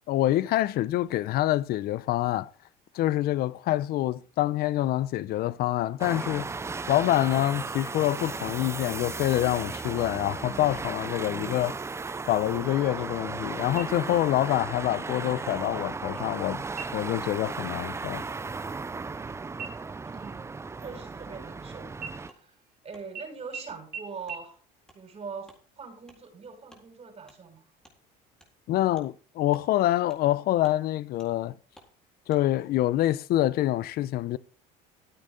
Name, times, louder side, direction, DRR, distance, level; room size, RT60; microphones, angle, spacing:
voice 1, 0.1-2.5 2.9-6.5 6.9-11.8 12.2-16.6 16.9-18.2 28.7-31.5 32.3-34.4, left 14 dB, 55° left, 0.6 m, -26 dB
sound 1, 6.0-22.3, right 4 dB, 15° right, 0.5 m, -35 dB
sound 2, 13.8-14.4 14.8-14.9 15.5-16.0 16.7-17.2 17.6-17.9 18.2-19.3 19.6-21.6 22.0-22.8 23.2-23.3 23.5-23.6 23.9-24.0 24.3-24.4, right 6 dB, 55° right, 1.9 m, -43 dB
voice 2, 20.1-20.5 20.8-22.5 22.8-24.6 24.9-27.6, right 5 dB, 35° right, 6.4 m, -42 dB
Wood, 22.3-22.4 22.9-23.0 23.6-23.8 24.2-24.4 24.8-25.0 25.4-25.6 26.0-26.2 26.7-26.8 27.3-27.4 27.8-28.0 28.4-28.5 28.9-29.1 29.5-29.7 30.1-30.3 30.6-30.8 31.2-31.3 31.7-31.9 32.3-32.4, equal, 5° left, 4.1 m, -56 dB
14.0 x 8.8 x 3.9 m
supercardioid pair, 90°, 18 cm